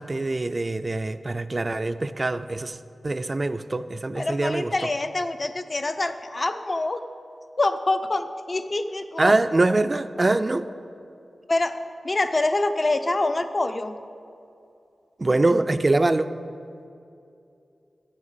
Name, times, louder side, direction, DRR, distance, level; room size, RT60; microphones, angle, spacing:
voice 1, 0.0-2.8 3.0-4.7 9.2-10.7 15.2-16.3, right 2 dB, 35° right, 10 dB, 0.3 m, -23 dB
voice 2, 4.2-7.0 7.6-9.3 11.5-11.8 12.0-13.9, left 2 dB, 40° left, 9 dB, 0.6 m, -25 dB
8.4 x 6.3 x 7.5 m, 2.6 s
wide cardioid pair, 70°, 0 cm